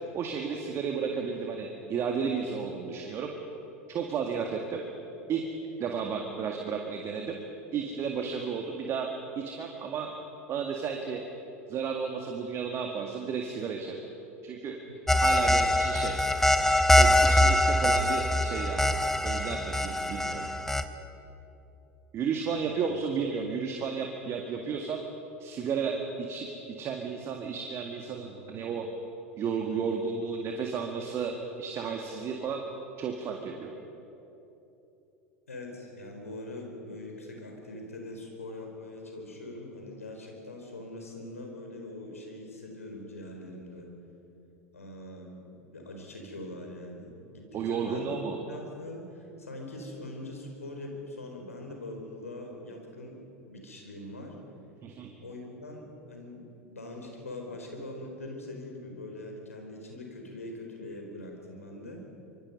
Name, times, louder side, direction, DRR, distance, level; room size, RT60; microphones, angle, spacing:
voice 1, 0.1-3.3 3.9-4.8 5.3-5.4 5.8-7.4 7.7-9.1 9.4-10.1 10.5-11.2 11.7-14.0 14.4-14.8 15.2-16.3 17.0-18.8 19.2-20.5 22.1-25.0 25.4-26.5 26.8-28.9 29.4-31.3 31.6-32.6 33.0-33.7 47.5-48.4 54.8-55.1, right 6 dB, 35° right, 2 dB, 2.0 m, -33 dB
sound 1, 15.1-20.8, left 1 dB, 5° left, 1.0 m, -23 dB
voice 2, 22.4-22.7 35.5-43.9 44.7-48.2 48.5-53.2 53.4-54.4 55.2-62.0, left 1 dB, 80° left, 1 dB, 4.4 m, -42 dB
25.5 x 24.0 x 5.4 m, 3.0 s
figure-of-eight pair, 80°, 8 cm